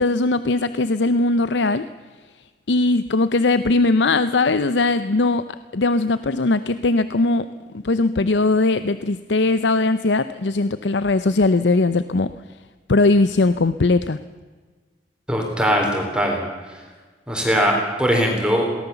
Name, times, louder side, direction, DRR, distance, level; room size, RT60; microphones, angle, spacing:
voice 1, 0.0-1.9 2.7-5.4 5.7-7.5 7.7-12.3 12.9-14.2, left 3 dB, 90° left, 13 dB, 0.7 m, -19 dB
voice 2, 15.3-16.8 17.3-18.6, equal, 5° right, 0 dB, 3.8 m, -21 dB
23.0 x 18.0 x 7.1 m, 1.4 s
head